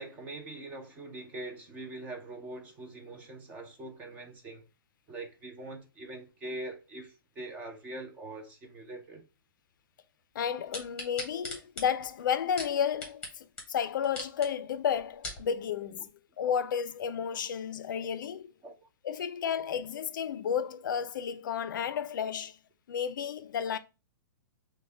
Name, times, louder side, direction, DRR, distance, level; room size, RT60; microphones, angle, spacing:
voice 1, 0.0-4.6 5.1-9.2 18.0-18.1 18.6-18.9, right 2 dB, 10° right, 0.5 m, -43 dB
voice 2, 10.3-16.1 16.4-18.5 19.0-22.6 22.9-23.8, left 8 dB, 60° left, 0.4 m, -32 dB
sound 1, 10.7-13.3 13.6-13.7 14.0-14.5 15.0-15.4 16.1-16.2, left 2 dB, 10° left, 1.1 m, -39 dB
6.1 x 2.2 x 3.3 m
hypercardioid pair, 170°, 12 cm